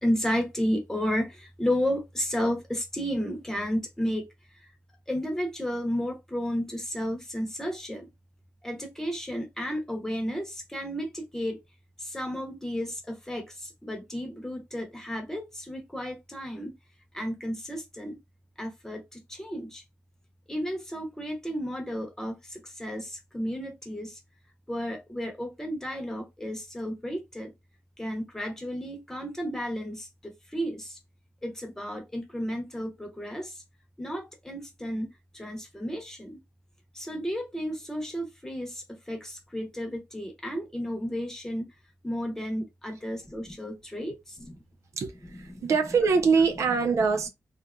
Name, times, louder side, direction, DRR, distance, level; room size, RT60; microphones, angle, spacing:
voice 1, 0.0-4.3 5.1-8.0 8.6-11.6 12.0-16.7 17.1-18.2 18.6-19.8 20.5-24.2 24.7-27.5 28.0-31.0 31.4-33.6 34.0-36.4 36.9-41.7 42.0-44.6 45.5-45.7, equal, 10° left, 0.9 m, -32 dB
voice 2, 44.9-47.3, right 5 dB, 75° right, 0.5 m, -24 dB
2.8 x 2.5 x 2.2 m
wide cardioid pair, 105°, 5 cm